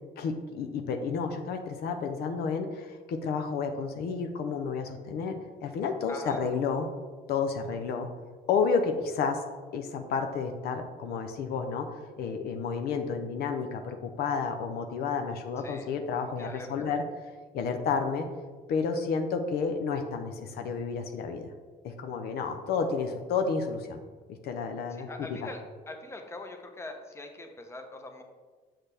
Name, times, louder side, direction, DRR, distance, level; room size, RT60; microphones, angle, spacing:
voice 1, 0.2-6.9 7.3-8.1 8.5-9.4 9.7-11.9 12.2-17.0 17.5-18.3 18.7-21.5 21.8-24.0 24.4-25.4, left 5 dB, 70° left, 5 dB, 0.6 m, -31 dB
voice 2, 6.1-6.4 15.6-15.9 16.2-16.9 24.9-28.2, left 2 dB, 15° left, 4 dB, 0.8 m, -43 dB
6.5 x 5.9 x 3.4 m, 1.4 s
cardioid pair, 110°, 17 cm